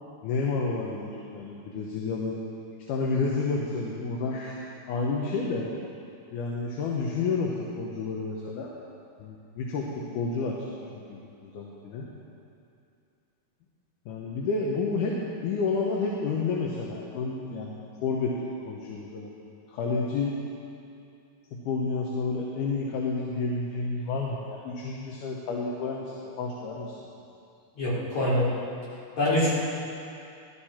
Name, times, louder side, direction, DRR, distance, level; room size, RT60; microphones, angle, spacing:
voice 1, 0.2-2.4 2.9-4.6 4.9-5.7 6.3-8.7 9.2-12.1 14.1-18.3 18.7-19.3 19.7-20.4 21.5-26.9, left 4 dB, 75° left, -2 dB, 2.6 m, -30 dB
voice 2, 27.8-28.5 29.2-29.5, left 1 dB, 60° left, -8 dB, 4.9 m, -24 dB
17.5 x 12.0 x 4.4 m, 2.6 s
omnidirectional pair, 3.8 m